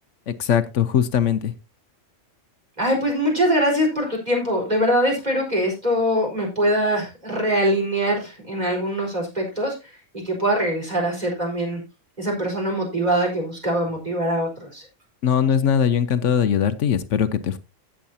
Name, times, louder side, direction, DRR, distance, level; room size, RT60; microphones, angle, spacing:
voice 1, 0.3-1.5 15.2-17.6, left 8 dB, 75° left, 13 dB, 1.1 m, -20 dB
voice 2, 2.8-9.7 10.1-11.8 12.2-14.8, equal, 35° right, 0 dB, 4.7 m, -23 dB
16.0 x 7.4 x 2.7 m, 0.25 s
omnidirectional pair, 1.3 m